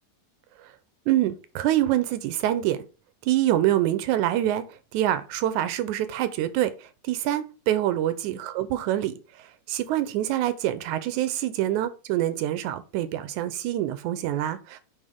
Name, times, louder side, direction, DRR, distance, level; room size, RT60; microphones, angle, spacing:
voice 1, 1.1-2.8 3.3-6.7 7.0-9.1 9.7-14.8, right 13 dB, 90° right, 2.1 m, -25 dB
9.2 x 3.7 x 3.5 m
omnidirectional pair, 3.4 m